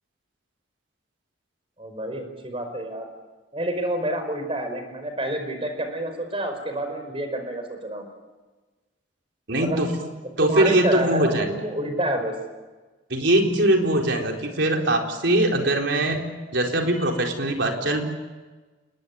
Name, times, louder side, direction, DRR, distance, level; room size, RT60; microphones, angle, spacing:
voice 1, 1.8-3.1 3.5-8.1 9.5-9.8 10.4-12.3, right 1 dB, 30° right, 6 dB, 5.0 m, -28 dB
voice 2, 9.5-9.9 10.4-11.5 13.1-16.2 16.5-18.0, right 1 dB, 65° right, 2 dB, 4.2 m, -21 dB
29.0 x 20.0 x 9.5 m, 1.3 s
head